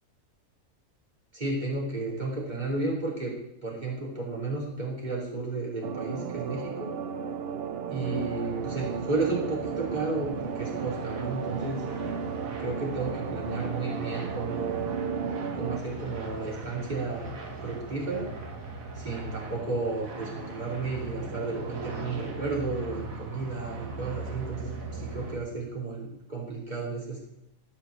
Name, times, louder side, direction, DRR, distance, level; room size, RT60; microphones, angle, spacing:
voice 1, 1.3-3.3 3.6-6.9 7.9-11.8 12.6-14.8 15.5-17.3 17.6-18.3 18.9-27.2, right 3 dB, 30° right, -4 dB, 3.2 m, -33 dB
sound 1, 5.8-15.8, right 6 dB, 55° right, 0.8 m, -34 dB
sound 2, 8.0-25.4, right 3 dB, 80° right, 1.8 m, -40 dB
12.0 x 5.6 x 6.4 m, 0.85 s
omnidirectional pair, 1.4 m